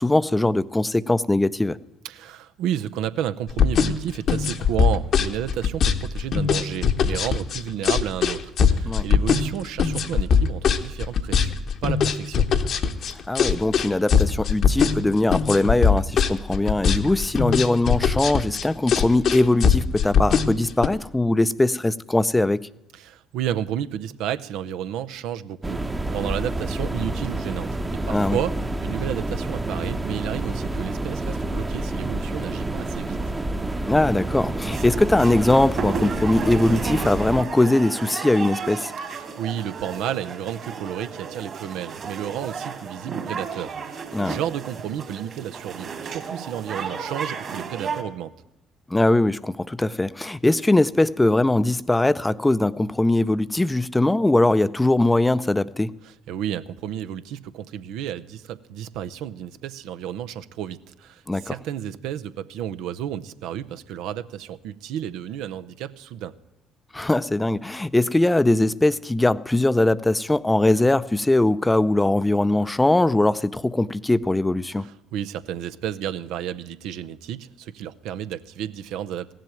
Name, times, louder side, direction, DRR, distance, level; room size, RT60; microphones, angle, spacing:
voice 1, 0.0-1.8 8.9-9.0 13.3-22.7 28.1-28.4 33.9-38.9 44.1-44.4 48.9-55.9 61.3-61.5 66.9-74.9, left 2 dB, 15° left, 0.6 m, -21 dB
voice 2, 2.0-11.5 11.8-12.5 22.9-25.8 26.1-28.6 28.8-33.2 39.0-48.3 56.0-66.3 74.8-79.3, right 10 dB, 70° right, 0.6 m, -31 dB
sound 1, 3.5-20.9, left 6 dB, 55° left, 1.1 m, -21 dB
sound 2, 25.6-37.4, right 2 dB, 20° right, 1.0 m, -28 dB
sound 3, 34.7-48.0, right 6 dB, 45° right, 2.4 m, -33 dB
16.5 x 7.6 x 9.0 m
hypercardioid pair, 55°, 0 cm